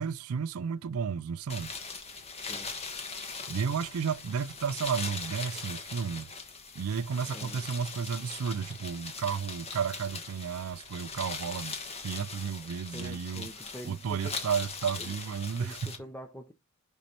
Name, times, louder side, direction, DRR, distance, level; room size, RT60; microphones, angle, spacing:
voice 1, 0.0-1.7 3.5-6.3 6.7-13.5 13.9-15.9, right 6 dB, 80° right, 0.4 m, -33 dB
sound 1, 1.5-16.0, left 4 dB, 30° left, 1.3 m, -41 dB
voice 2, 7.3-7.6 12.6-14.4 15.0-15.1 15.6-16.5, equal, 10° left, 0.8 m, -45 dB
6.0 x 5.4 x 4.3 m
head